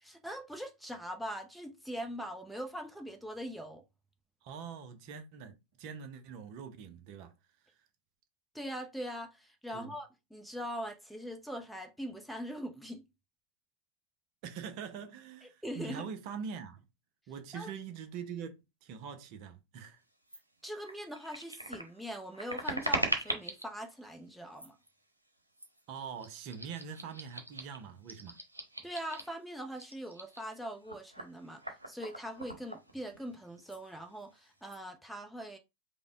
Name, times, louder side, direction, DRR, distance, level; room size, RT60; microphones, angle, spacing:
voice 1, 0.0-3.8 8.5-13.1 15.4-16.0 17.5-17.7 20.6-24.7 28.8-31.6 31.9-35.6, equal, ahead, 0.7 m, -42 dB
voice 2, 4.4-7.3 9.7-10.0 14.4-16.8 17.3-20.0 25.9-28.4, right 6 dB, 45° right, 0.8 m, -43 dB
sound 1, 20.3-20.4 20.8-23.7 24.5-24.9 25.6-25.8 26.2-29.4 29.7-33.4 33.6-33.8 34.1-34.8, right 1 dB, 85° right, 0.8 m, -40 dB
5.1 x 2.2 x 3.7 m
figure-of-eight pair, 90°, 0 cm